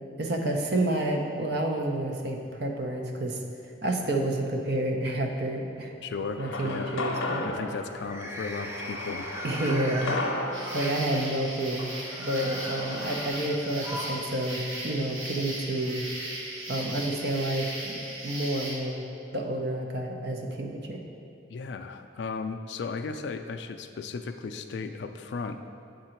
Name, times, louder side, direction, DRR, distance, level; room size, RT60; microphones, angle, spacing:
voice 1, 0.2-3.4 3.8-5.9 6.4-7.5 9.4-10.4 10.7-11.9 12.2-16.0 16.7-19.1 19.3-21.0, right 1 dB, 55° right, 2 dB, 0.7 m, -29 dB
sound 1, 4.4-5.0 5.4-5.8 7.9-11.0 11.8-14.3 14.5-14.6 15.8-15.9, equal, 15° right, 0.4 m, -39 dB
voice 2, 6.0-6.9 7.4-9.3 21.5-25.6, left 4 dB, 60° left, 7 dB, 0.3 m, -35 dB
sound 2, 6.4-13.3, left 2 dB, 90° left, 0.7 m, -35 dB
sound 3, 10.5-18.8, right 1 dB, 85° right, 1.2 m, -37 dB
8.0 x 3.8 x 4.4 m, 2.6 s
head